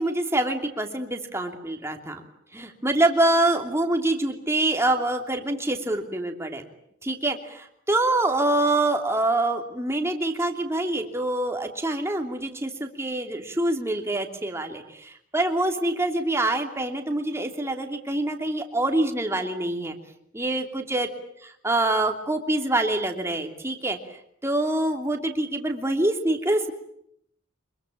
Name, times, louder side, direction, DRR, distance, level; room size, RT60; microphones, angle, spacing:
voice 1, 0.0-2.2 2.5-6.6 7.0-20.0 20.3-21.1 21.4-24.2 24.4-26.7, right 1 dB, 15° right, 4 dB, 3.0 m, -25 dB
25.5 x 22.5 x 8.9 m, 0.71 s
head